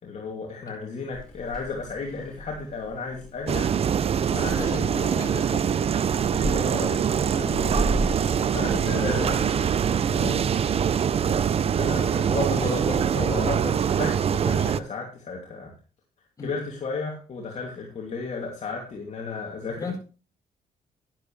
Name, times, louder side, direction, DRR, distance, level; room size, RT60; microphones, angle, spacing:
voice 1, 0.0-3.7 4.3-5.6 6.4-10.6 11.8-15.7 16.4-20.0, left 4 dB, 45° left, -1 dB, 2.7 m, -34 dB
Purr / Meow, 1.1-9.9, right 1 dB, 5° left, 3.2 m, -36 dB
sound 1, 3.5-14.8, right 8 dB, 40° right, 0.5 m, -24 dB
voice 2, 4.6-5.6 6.4-6.6 9.0-9.3 11.2-11.5 16.4-16.6 19.7-20.0, left 2 dB, 20° left, 0 dB, 4.8 m, -36 dB
12.0 x 11.0 x 3.3 m, 0.35 s
cardioid pair, 135°, 16 cm